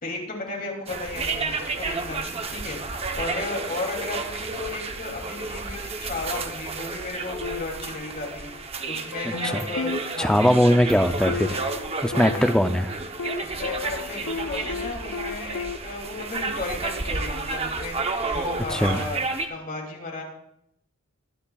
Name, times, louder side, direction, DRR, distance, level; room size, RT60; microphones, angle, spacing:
voice 1, 0.0-2.8 3.1-8.5 8.8-10.8 12.1-12.5 13.4-20.2, left 2 dB, 40° left, 0 dB, 2.7 m, -34 dB
sound 1, 0.9-19.5, right 3 dB, 25° right, 0.8 m, -31 dB
sound 2, 7.4-8.7 9.1-15.8, left 5 dB, 85° left, 0.5 m, -35 dB
voice 2, 9.3-9.6 10.2-11.7 12.0-13.0 18.7-19.0, equal, 5° left, 8 dB, 0.4 m, -21 dB
21.5 x 10.0 x 2.3 m, 0.76 s
head